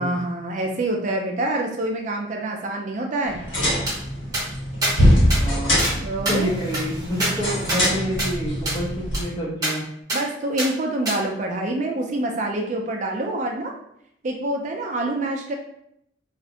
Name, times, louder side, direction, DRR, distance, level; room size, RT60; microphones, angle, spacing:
voice 1, 0.0-3.4 6.0-6.5 10.1-13.7 14.2-15.5, right 2 dB, 40° right, 1 dB, 0.4 m, -26 dB
sound 1, 3.3-9.2, equal, 85° left, 1.2 m, -23 dB
sound 2, 3.9-4.0 4.3-4.5 4.8-4.9 5.3-5.4 5.8-5.9 6.3-7.9 8.2-8.3 8.7-8.8 9.1-9.2 9.6-9.7 10.1-10.2 10.6-10.7 11.1-11.2, right 1 dB, 20° right, 0.8 m, -26 dB
voice 2, 5.3-5.9 6.3-9.8, equal, 20° left, -4 dB, 0.6 m, -28 dB
2.4 x 2.1 x 2.7 m, 0.74 s
head